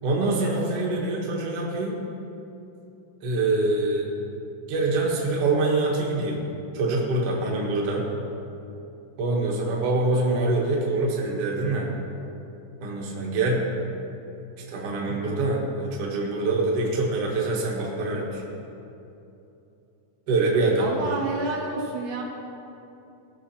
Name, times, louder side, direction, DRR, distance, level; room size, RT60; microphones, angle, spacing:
voice 1, 0.0-2.0 3.2-4.1 4.7-6.4 6.7-8.0 9.2-11.9 12.8-13.6 14.7-18.4 20.3-20.9, right 2 dB, 50° right, -2 dB, 2.0 m, -25 dB
voice 2, 20.8-22.2, right 3 dB, 85° right, -1 dB, 3.6 m, -29 dB
18.5 x 6.2 x 4.3 m, 2.8 s
omnidirectional pair, 4.4 m